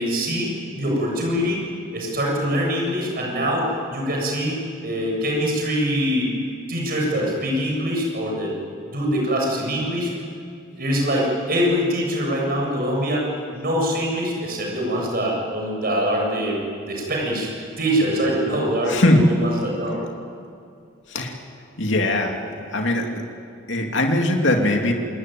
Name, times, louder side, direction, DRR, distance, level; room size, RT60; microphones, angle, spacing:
voice 1, 0.0-1.6 1.9-6.3 6.7-8.6 8.9-10.1 10.8-17.5 17.8-20.0, equal, 50° right, -1 dB, 7.5 m, -24 dB
voice 2, 18.9-19.2 21.1-21.4 21.8-22.4 22.7-23.2 23.7-24.9, left 1 dB, 65° left, 2 dB, 2.9 m, -20 dB
27.5 x 20.0 x 9.4 m, 2.5 s
head